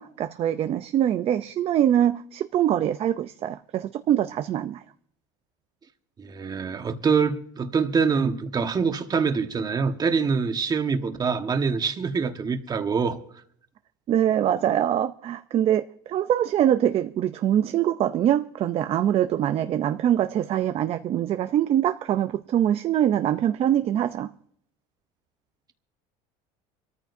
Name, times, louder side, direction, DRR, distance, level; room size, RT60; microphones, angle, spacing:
voice 1, 0.0-4.8 14.1-24.3, right 11 dB, 40° right, 0.6 m, -23 dB
voice 2, 6.2-13.2, right 5 dB, 25° right, 1.5 m, -25 dB
25.5 x 14.0 x 2.7 m
supercardioid pair, 120°, 15 cm